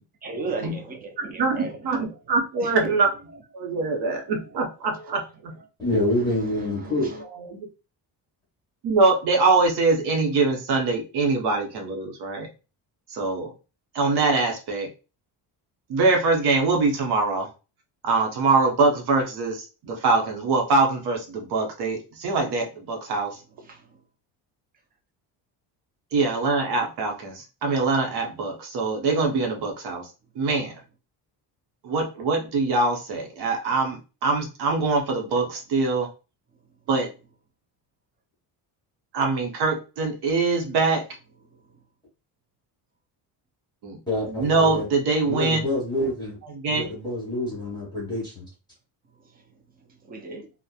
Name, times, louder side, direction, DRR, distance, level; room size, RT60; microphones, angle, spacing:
voice 1, 0.2-2.1 2.6-3.0 4.9-5.1 6.2-7.2 23.7-23.8 50.0-50.5, right 3 dB, 25° right, 0.4 m, -36 dB
voice 2, 1.2-3.1 3.5-5.5 7.4-7.7 8.8-12.5 13.1-13.5 13.9-14.9 15.9-17.5 18.0-23.4 26.1-30.1 30.4-30.7 31.8-36.1 36.9-37.1 39.1-41.1 43.8-44.0 44.3-45.6 46.6-46.8, right 3 dB, 65° right, 0.9 m, -23 dB
voice 3, 5.8-7.1 44.1-44.9 45.2-46.4 46.7-48.5, left 1 dB, 10° left, 1.1 m, -26 dB
2.8 x 2.1 x 2.3 m
cardioid pair, 175°, 42 cm